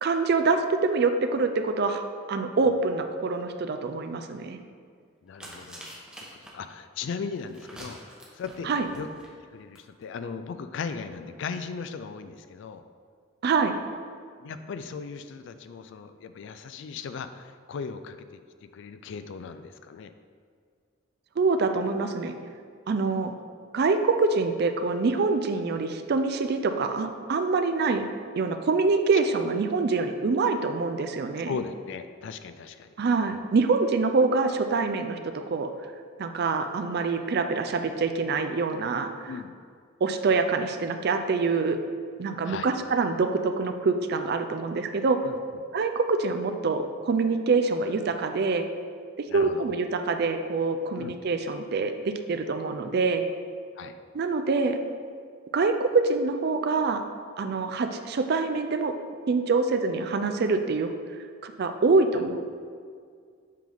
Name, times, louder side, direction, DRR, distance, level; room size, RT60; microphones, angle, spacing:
voice 1, 0.0-2.0 2.3-4.6 8.6-8.9 13.4-13.8 21.4-22.3 22.9-23.3 23.7-28.0 28.4-31.6 33.0-35.7 36.2-39.3 40.0-41.8 42.2-45.2 45.7-48.7 49.3-53.3 54.1-54.8 55.5-57.0 57.4-58.9 59.3-60.9 61.4-62.4, right 4 dB, 55° right, 7 dB, 0.4 m, -25 dB
voice 2, 5.2-6.3 6.5-8.0 8.3-9.1 9.5-12.8 14.4-20.1 31.4-32.9 33.3-33.5 37.1-37.3 39.3-39.5 42.4-42.7 45.2-45.4 49.3-49.7 50.9-51.2 53.8-54.0 62.1-62.2, left 5 dB, 65° left, 10 dB, 0.3 m, -37 dB
sound 1, 5.3-6.5 7.4-9.3 9.8-9.9 10.0-10.1, right 1 dB, 5° right, 0.8 m, -45 dB
7.5 x 3.8 x 3.5 m, 2.1 s
head